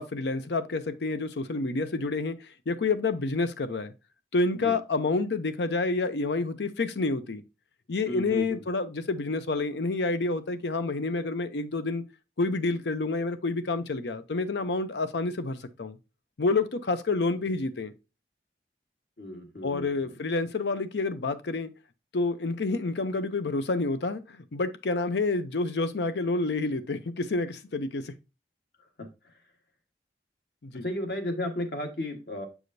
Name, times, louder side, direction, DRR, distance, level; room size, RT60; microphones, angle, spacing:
voice 1, 0.0-2.4 2.7-3.9 4.3-7.4 7.9-12.0 12.4-16.0 16.4-17.9 19.6-21.7 22.1-28.1 30.6-30.8, left 3 dB, 75° left, 0.6 m, -28 dB
voice 2, 8.1-8.6 17.4-17.6 19.2-20.2 29.0-29.3 30.7-32.5, left 1 dB, 60° left, 1.5 m, -34 dB
7.6 x 4.9 x 2.6 m
head